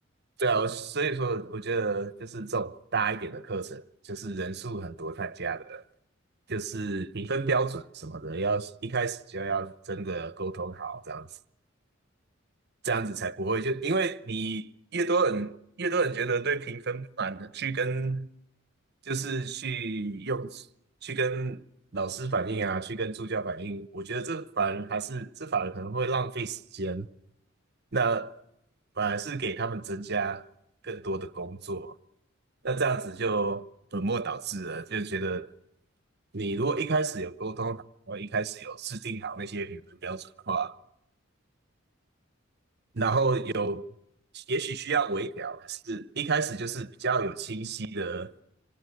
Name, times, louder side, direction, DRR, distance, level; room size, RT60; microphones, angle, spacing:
voice 1, 0.4-5.8 6.5-11.3 12.8-18.3 19.1-20.7 21.0-21.6 21.9-27.1 27.9-28.4 29.0-30.5 30.8-31.9 32.6-33.6 33.9-35.5 36.3-40.7 42.9-43.9 44.3-48.3, right 4 dB, 55° right, 1.0 m, -30 dB
27.0 x 26.5 x 8.0 m
head